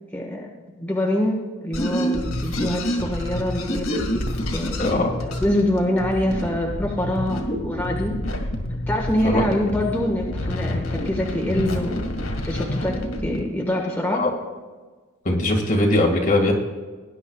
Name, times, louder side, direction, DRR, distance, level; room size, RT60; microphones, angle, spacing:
voice 1, 0.1-0.5 0.8-4.2 4.5-4.8 5.2-8.4 8.9-12.1 12.4-14.3, left 1 dB, 10° left, -3 dB, 1.5 m, -25 dB
sound 1, 1.7-13.4, equal, 85° left, 1.9 m, -28 dB
voice 2, 4.8-5.1 9.2-9.5 14.1-14.3 15.2-16.5, left 1 dB, 40° left, 0 dB, 2.0 m, -20 dB
19.0 x 10.5 x 2.4 m, 1.4 s
head